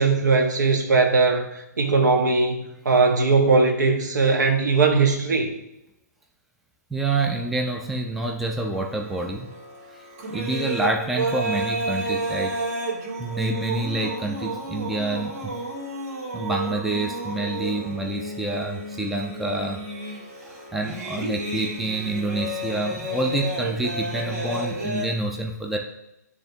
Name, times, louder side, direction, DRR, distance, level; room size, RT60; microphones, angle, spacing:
voice 1, 0.0-5.5, right 4 dB, 75° right, 4 dB, 1.1 m, -20 dB
voice 2, 6.9-9.5 10.3-12.6 13.2-15.5 16.3-25.8, right 2 dB, ahead, 0 dB, 0.3 m, -28 dB
sound 1, 8.7-25.1, right 1 dB, 55° right, 1.6 m, -31 dB
10.0 x 3.5 x 2.7 m, 0.86 s
hypercardioid pair, 150°, 10 cm